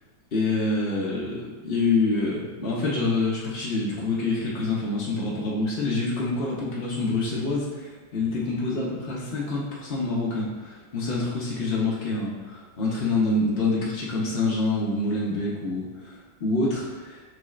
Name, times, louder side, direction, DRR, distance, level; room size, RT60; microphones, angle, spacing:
voice 1, 0.3-17.2, left 3 dB, 70° left, -6 dB, 0.5 m, -26 dB
6.2 x 2.3 x 3.1 m, 1.3 s
omnidirectional pair, 2.1 m